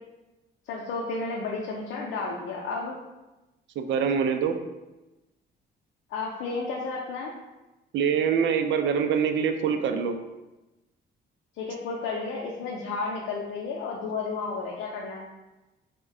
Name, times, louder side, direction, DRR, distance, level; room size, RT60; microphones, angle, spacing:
voice 1, 0.7-2.9 6.1-7.3 11.6-15.2, left 4 dB, 85° left, -2 dB, 0.5 m, -32 dB
voice 2, 3.8-4.6 7.9-10.2, right 7 dB, 70° right, 7 dB, 0.4 m, -24 dB
3.2 x 2.2 x 3.6 m, 1.0 s
cardioid pair, 90°, 20 cm